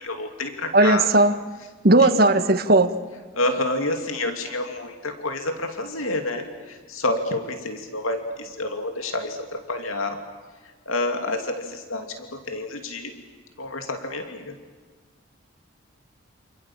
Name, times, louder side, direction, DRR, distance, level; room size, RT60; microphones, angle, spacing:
voice 1, 0.0-1.1 2.0-2.1 3.3-10.2 10.9-13.2 13.6-14.6, left 2 dB, 85° left, 5 dB, 2.7 m, -29 dB
voice 2, 0.7-1.3 1.8-2.9, right 2 dB, 45° right, 10 dB, 1.3 m, -16 dB
29.0 x 28.0 x 7.4 m, 1.4 s
head